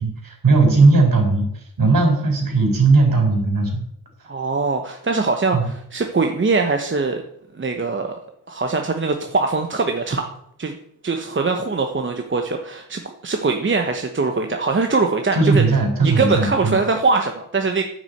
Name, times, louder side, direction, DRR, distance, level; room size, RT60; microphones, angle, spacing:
voice 1, 0.0-3.9 5.5-5.7 15.3-16.8, right 3 dB, 50° right, 3 dB, 4.4 m, -17 dB
voice 2, 4.3-7.2 7.6-8.1 8.5-10.3 10.6-10.8 11.0-15.6 16.0-17.8, right 4 dB, 30° right, 4 dB, 1.1 m, -22 dB
9.1 x 6.3 x 7.9 m, 0.75 s
cardioid pair, 75°, 42 cm